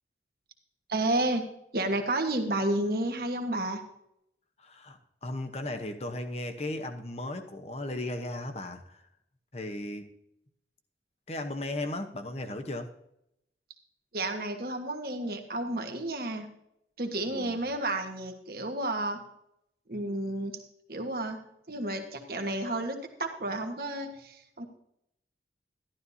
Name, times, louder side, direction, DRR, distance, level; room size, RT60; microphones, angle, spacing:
voice 1, 0.9-1.4 1.7-3.8 14.1-16.5 17.0-19.2 19.9-20.5 20.9-21.4 21.7-24.7, right 2 dB, 55° right, 4 dB, 1.4 m, -31 dB
voice 2, 4.6-9.0 9.5-10.1 11.3-12.9 17.3-17.6, left 1 dB, 35° left, 6 dB, 1.0 m, -36 dB
12.0 x 12.0 x 2.8 m, 0.77 s
head